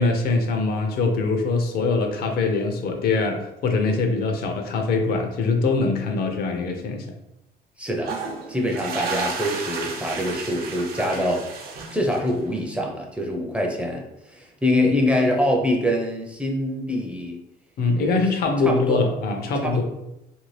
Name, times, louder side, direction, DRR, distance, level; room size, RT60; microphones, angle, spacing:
voice 1, 0.0-7.1 17.8-19.8, left 3 dB, 65° left, 4 dB, 0.6 m, -23 dB
voice 2, 7.8-8.1 8.5-11.5 11.9-17.4 18.0-18.2 18.7-19.0 19.6-19.8, left 1 dB, 5° right, 0 dB, 0.5 m, -24 dB
sound 1, 8.0-12.5, right 4 dB, 65° right, 0.6 m, -32 dB
2.6 x 2.5 x 3.1 m, 0.88 s
cardioid pair, 110°, 17 cm